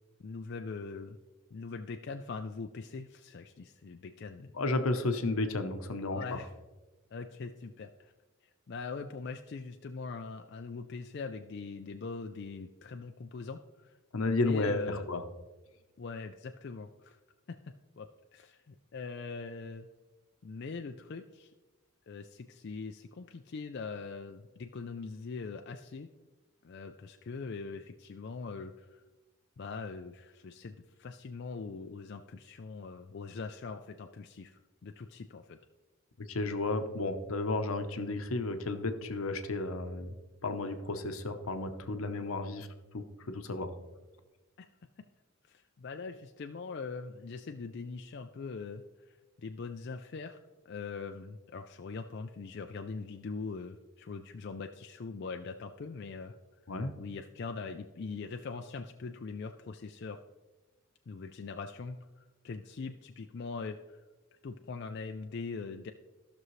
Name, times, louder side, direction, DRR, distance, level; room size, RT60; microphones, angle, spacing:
voice 1, 0.2-1.2 1.5-4.5 6.1-6.5 7.1-8.1 8.7-14.0 14.3-15.1 16.0-17.2 18.0-18.1 18.3-19.9 20.4-21.5 22.1-26.1 26.6-29.0 29.6-35.6 44.6-44.7 45.4-50.4 50.7-56.3 56.9-60.2 61.1-64.0 64.4-65.9, left 4 dB, 50° left, 5 dB, 0.4 m, -42 dB
voice 2, 4.5-6.4 14.1-15.2 36.3-40.1 40.4-42.7 42.9-43.7 56.7-56.9, left 2 dB, 80° left, 7 dB, 0.9 m, -32 dB
15.0 x 6.2 x 3.2 m, 1.2 s
head